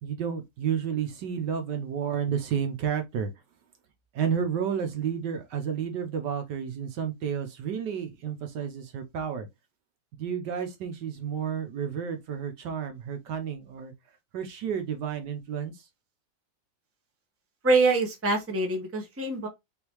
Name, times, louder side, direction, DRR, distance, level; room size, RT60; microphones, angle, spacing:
voice 1, 0.0-3.3 4.1-9.5 10.2-13.9 14.3-15.9, right 7 dB, 70° right, 1.4 m, -31 dB
voice 2, 17.6-19.5, right 3 dB, 10° right, 0.8 m, -24 dB
3.9 x 3.8 x 3.0 m
omnidirectional pair, 2.0 m